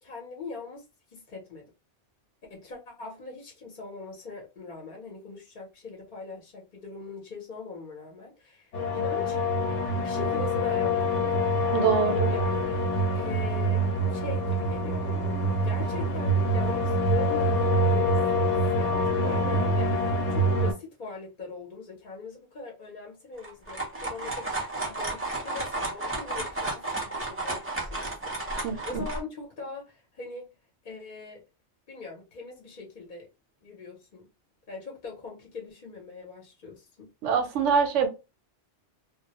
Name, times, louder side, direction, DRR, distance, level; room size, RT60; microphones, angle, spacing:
voice 1, 0.0-1.7 2.5-9.4 10.0-11.6 12.3-12.5 13.1-15.3 15.6-17.6 17.9-24.5 24.9-30.5 30.8-31.4 31.9-33.3 33.6-34.3 34.7-37.1, left 3 dB, 50° left, 0.7 m, -41 dB
sound 1, 8.7-20.7, equal, 90° left, 1.0 m, -25 dB
voice 2, 11.7-12.3 28.6-28.8 37.2-38.1, right 7 dB, 85° right, 0.9 m, -24 dB
sound 2, 23.4-29.2, right 2 dB, 15° right, 0.4 m, -33 dB
2.2 x 2.0 x 2.8 m
omnidirectional pair, 1.2 m